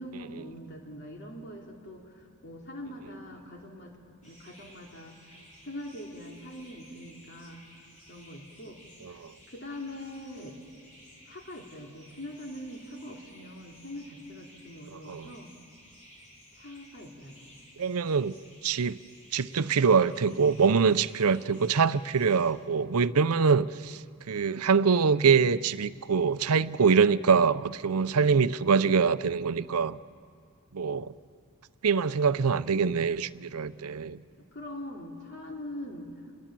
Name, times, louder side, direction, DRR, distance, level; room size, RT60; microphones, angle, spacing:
voice 1, 0.0-4.0 4.2-5.2 5.6-7.6 8.1-8.8 9.1-9.2 9.5-10.6 11.2-15.5 16.6-17.5 34.4-36.1, left 1 dB, 50° left, 0 dB, 3.2 m, -43 dB
sound 1, 4.2-22.5, equal, 35° left, 4.4 m, -55 dB
voice 2, 14.9-15.3 17.8-18.3 18.6-19.0 19.3-30.0 30.7-31.1 31.8-34.2, right 5 dB, 90° right, 15 dB, 0.6 m, -24 dB
27.5 x 20.5 x 7.5 m, 2.3 s
head